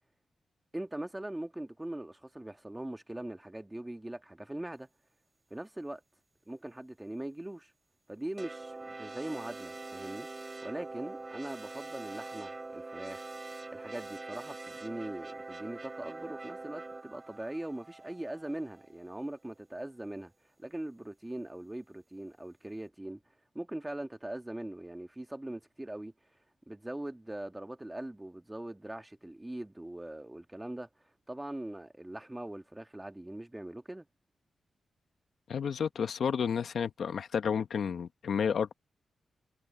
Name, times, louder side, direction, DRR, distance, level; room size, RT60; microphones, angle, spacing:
voice 1, 0.7-4.9 5.5-6.0 6.5-7.7 8.1-10.3 10.6-13.3 13.7-20.3 20.6-23.2 23.5-26.1 26.7-30.9 31.3-34.1, right 1 dB, 15° right, 2.3 m, -41 dB
sound 1, 8.4-18.9, right 3 dB, 35° right, 5.1 m, -44 dB
voice 2, 35.5-38.7, left 7 dB, 75° left, 1.3 m, -31 dB
cardioid pair, 50°, 0 cm